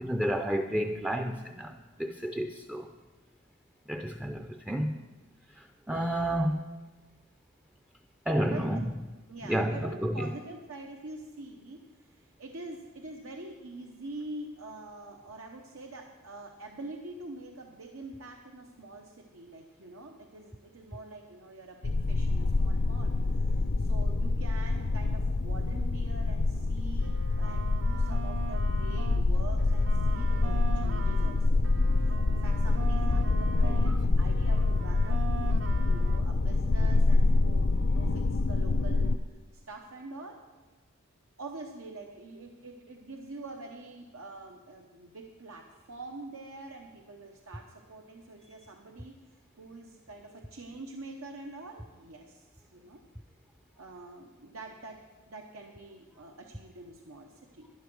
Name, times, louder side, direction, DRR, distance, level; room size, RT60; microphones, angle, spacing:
voice 1, 0.0-2.9 3.9-5.0 5.6-6.8 8.3-8.9 9.5-10.3, equal, 5° right, 5 dB, 0.4 m, -31 dB
voice 2, 8.5-8.8 9.3-23.1 23.4-23.5 23.8-31.6 32.3-35.3 35.9-39.1 39.5-40.4 41.4-49.2 49.6-53.0 53.8-55.0 55.3-57.7, right 2 dB, 90° right, 2 dB, 1.0 m, -45 dB
sound 1, 21.8-39.2, left 3 dB, 55° left, 0.5 m, -26 dB
sound 2, 26.9-29.3 29.6-33.9 34.2-36.2, right 7 dB, 60° right, 0.6 m, -42 dB
11.5 x 11.0 x 6.2 m, 1.2 s
head